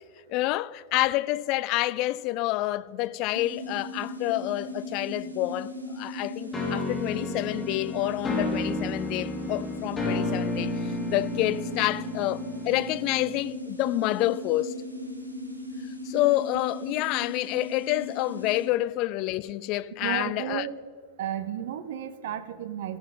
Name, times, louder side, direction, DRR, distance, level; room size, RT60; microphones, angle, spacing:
voice 1, 0.3-5.7 5.9-14.8 16.0-20.7, left 16 dB, 40° left, 0.3 m, -28 dB
sound 1, 3.3-18.7, left 1 dB, 90° right, 1.4 m, -38 dB
sound 2, 6.5-13.4, left 2 dB, 10° left, 2.1 m, -32 dB
voice 2, 20.0-20.8 21.2-23.0, right 10 dB, 55° right, 0.7 m, -33 dB
16.0 x 7.8 x 3.7 m
figure-of-eight pair, 90°, 0 cm